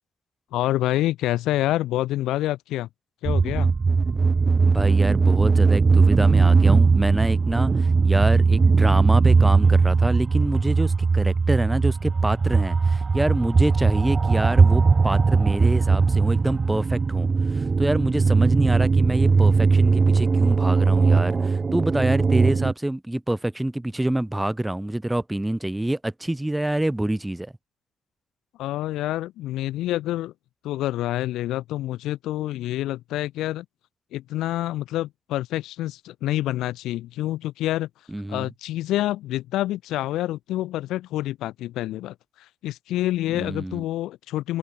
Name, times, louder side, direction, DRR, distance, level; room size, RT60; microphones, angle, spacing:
voice 1, 0.5-2.9 3.2-3.7 28.6-30.3 30.6-33.7 34.1-37.9 38.3-44.6, left 15 dB, 90° left, 2.4 m, -27 dB
sound 1, 3.3-22.7, right 4 dB, 35° right, 1.5 m, -19 dB
voice 2, 4.6-27.5 38.1-38.5 43.3-43.8, right 1 dB, 10° right, 5.6 m, -26 dB
open air
cardioid pair, 90°, 0 cm